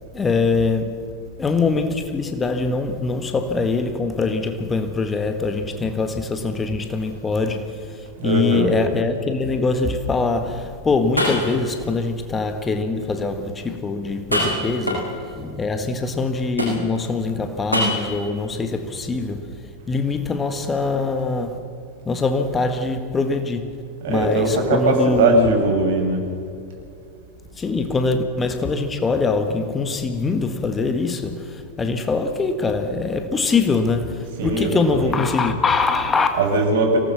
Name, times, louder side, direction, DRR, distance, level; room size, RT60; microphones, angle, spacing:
voice 1, 0.1-1.1 1.4-21.6 22.0-23.8 24.1-25.6 27.5-36.4, left 4 dB, 15° left, 1.5 m, -23 dB
sound 1, 6.8-7.2 7.7-7.8 8.5-8.6 10.6-10.7 11.2-11.8 14.1-15.3 16.6-17.1 17.7-18.3, equal, 85° left, 6.6 m, -24 dB
voice 2, 8.2-8.8 24.0-26.2 34.4-35.2 36.4-37.0, right 2 dB, 55° right, 5.5 m, -20 dB
25.0 x 18.5 x 6.9 m
figure-of-eight pair, 90°, 0 cm